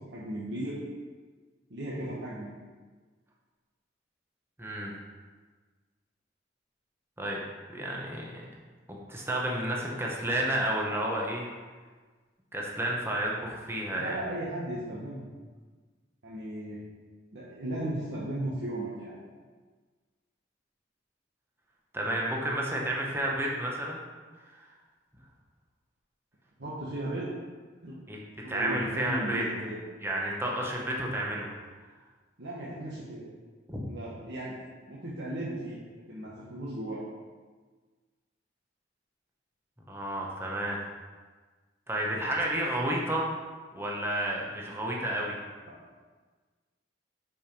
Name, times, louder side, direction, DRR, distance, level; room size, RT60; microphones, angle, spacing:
voice 1, 0.1-0.8 1.7-2.5 13.9-15.3 16.2-16.8 17.3-19.2 26.6-27.3 27.8-28.0 28.4-29.8 32.4-33.4 33.9-34.5 34.9-35.8 36.1-37.0, right 1 dB, 65° right, -7 dB, 1.3 m, -36 dB
voice 2, 4.6-4.9 7.2-7.4 7.7-8.5 8.9-11.4 12.5-14.2 21.9-24.0 24.5-24.6 28.1-28.2 28.5-29.5 30.0-31.5 33.7-33.8 39.9-40.8 41.9-43.3 43.7-45.4, right 1 dB, 15° right, -3 dB, 1.0 m, -31 dB
6.0 x 5.0 x 5.3 m, 1.4 s
head